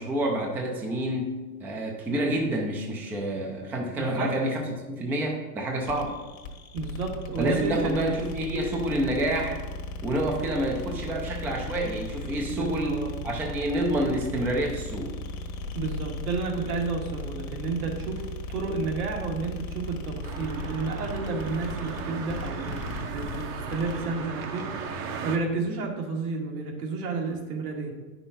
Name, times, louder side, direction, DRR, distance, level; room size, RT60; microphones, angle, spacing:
voice 1, 0.0-1.3 1.6-6.2 7.4-9.6 10.0-13.0 13.2-15.2, right 1 dB, 5° right, 0 dB, 0.4 m, -28 dB
voice 2, 4.0-4.4 6.7-8.1 12.5-13.1 15.7-22.8 23.1-28.0, right 4 dB, 80° right, 0 dB, 2.2 m, -31 dB
sound 1, 5.8-24.1, left 2 dB, 65° left, 1.5 m, -37 dB
sound 2, 20.2-25.4, right 5 dB, 30° right, 0.7 m, -36 dB
9.0 x 5.9 x 4.0 m, 1.3 s
supercardioid pair, 140°, 44 cm